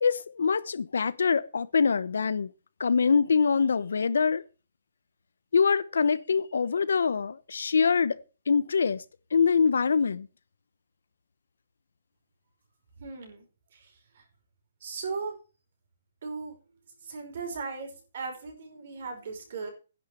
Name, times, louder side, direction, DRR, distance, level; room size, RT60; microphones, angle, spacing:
voice 1, 0.0-2.5 2.8-4.4 5.5-8.2 8.5-9.0 9.3-10.3, left 5 dB, 85° left, 1.0 m, -24 dB
voice 2, 13.0-13.5 13.7-14.2 14.8-15.4 16.2-16.6 17.0-19.7, right 4 dB, 45° right, 5.2 m, -37 dB
10.5 x 6.7 x 7.7 m
hypercardioid pair, 175°, 0 cm